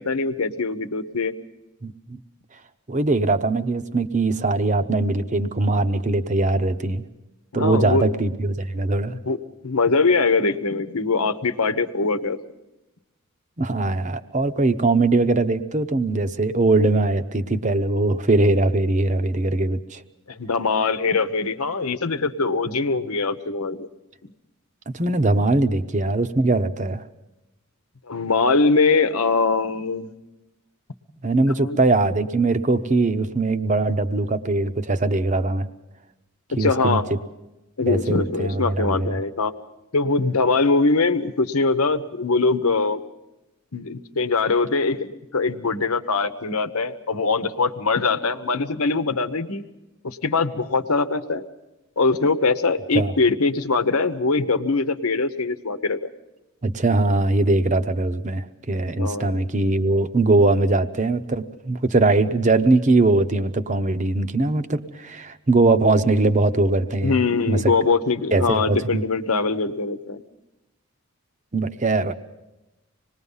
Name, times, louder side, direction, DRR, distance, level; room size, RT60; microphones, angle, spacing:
voice 1, 0.0-1.3 7.5-8.0 9.2-9.4 9.6-12.4 20.3-23.9 28.1-30.1 31.6-31.8 36.5-37.0 37.8-39.5 39.9-43.0 43.7-49.6 50.0-51.4 52.0-56.0 59.0-59.4 67.0-70.2, left 4 dB, 85° left, 10 dB, 1.1 m, -22 dB
voice 2, 1.8-2.2 2.9-7.1 7.5-9.1 13.6-20.0 24.9-27.0 31.2-35.7 36.6-37.0 37.9-39.2 52.9-53.1 56.6-67.2 67.5-67.7 68.3-69.0 71.5-72.1, right 2 dB, 35° right, 10 dB, 0.8 m, -21 dB
26.0 x 20.0 x 5.6 m, 0.98 s
head